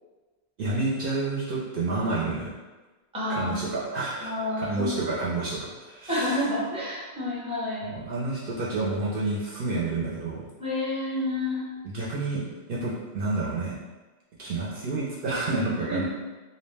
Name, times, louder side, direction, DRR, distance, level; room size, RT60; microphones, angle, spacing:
voice 1, 0.6-2.5 3.3-4.3 4.6-6.4 7.8-10.4 11.8-13.7 14.4-16.1, right 3 dB, 60° right, -6 dB, 0.7 m, -29 dB
voice 2, 3.1-3.7 4.2-4.9 5.4-5.5 6.1-8.0 10.6-11.6 15.9-16.1, left 1 dB, 5° right, -7 dB, 0.6 m, -29 dB
2.4 x 2.1 x 3.2 m, 1.2 s
omnidirectional pair, 1.1 m